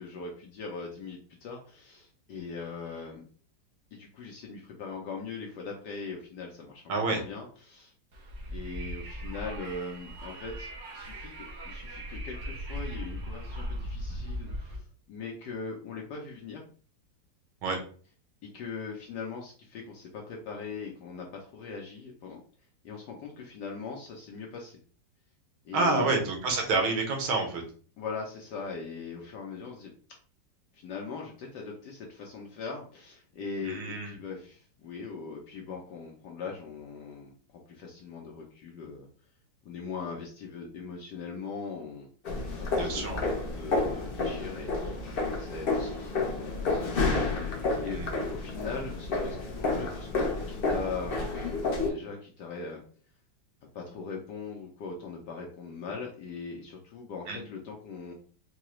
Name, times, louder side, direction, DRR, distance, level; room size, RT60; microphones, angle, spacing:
voice 1, 0.0-3.2 3.9-7.9 8.5-16.6 18.5-22.4 22.8-24.8 25.6-26.2 28.0-29.9 30.8-39.1 39.6-42.1 42.7-43.2 43.5-44.9 45.3-47.0 47.8-51.2 51.9-52.8 53.6-58.1, left 5 dB, 70° left, 0 dB, 1.1 m, -40 dB
voice 2, 6.9-7.2 17.6-17.8 25.7-27.6 33.6-34.1 42.7-43.2 47.9-48.1 57.3-57.4, right 3 dB, 85° right, 2 dB, 1.8 m, -28 dB
Wind, 8.1-14.8, equal, 50° right, 1.0 m, -38 dB
sound 1, 42.2-51.9, left 3 dB, 85° left, 0.5 m, -30 dB
4.7 x 2.3 x 3.0 m, 0.42 s
omnidirectional pair, 2.2 m